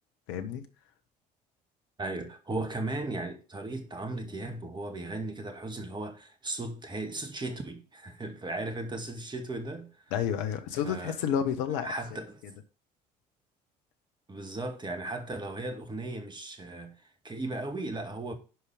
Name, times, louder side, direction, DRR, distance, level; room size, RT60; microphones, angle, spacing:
voice 1, 0.3-0.6 10.1-12.2, left 8 dB, 65° left, 1.3 m, -30 dB
voice 2, 2.0-9.9 10.8-11.2 11.8-12.4 14.3-16.9 17.2-18.3, right 2 dB, 20° right, 2.2 m, -36 dB
11.0 x 5.1 x 5.2 m
figure-of-eight pair, 55°, 21 cm